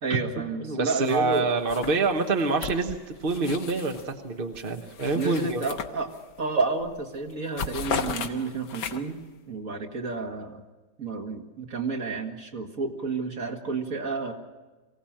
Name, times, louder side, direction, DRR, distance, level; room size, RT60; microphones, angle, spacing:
voice 1, 0.0-1.5 5.1-6.1 6.4-9.2 9.5-10.6 11.0-14.3, right 4 dB, 50° right, 2 dB, 2.4 m, -30 dB
voice 2, 0.6-5.6, right 3 dB, 35° right, 4 dB, 1.2 m, -26 dB
sound 1, 1.1-1.4 1.7-4.1 4.5-6.4 6.8-7.0 7.3-9.2, left 6 dB, 80° left, 1.7 m, -35 dB
23.5 x 17.0 x 8.8 m, 1.3 s
omnidirectional pair, 1.8 m